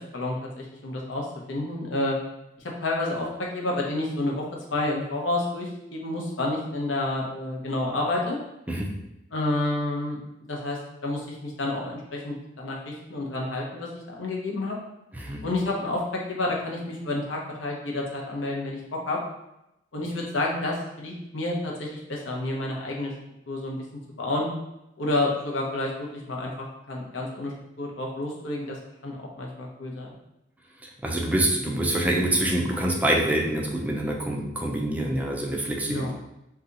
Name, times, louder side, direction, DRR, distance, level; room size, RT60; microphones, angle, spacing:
voice 1, 0.1-2.2 2.8-4.4 4.7-8.4 9.3-10.2 10.5-14.8 15.4-19.2 19.9-23.1 23.5-23.8 24.2-24.5 25.0-27.5 27.8-28.8 29.0-30.1 35.9-36.1, left 2 dB, 75° left, -2 dB, 0.7 m, -29 dB
voice 2, 30.8-36.1, right 1 dB, 10° right, -1 dB, 0.4 m, -26 dB
2.8 x 2.3 x 3.8 m, 0.87 s
head